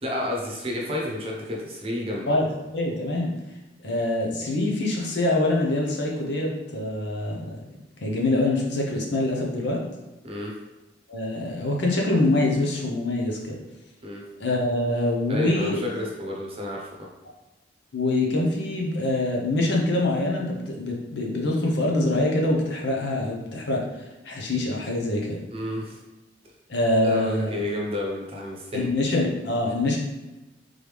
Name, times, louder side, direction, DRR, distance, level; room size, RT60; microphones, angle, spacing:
voice 1, 0.0-2.4 10.2-10.5 14.0-14.2 15.3-17.1 25.5-26.0 27.0-28.9, left 1 dB, 35° right, -1 dB, 0.8 m, -31 dB
voice 2, 2.3-3.3 3.8-7.4 8.0-9.8 11.1-13.6 14.4-15.8 17.9-23.8 24.2-25.4 26.7-27.6 28.7-30.0, left 2 dB, 70° left, -1 dB, 0.8 m, -24 dB
3.9 x 3.2 x 3.3 m, 1.0 s
head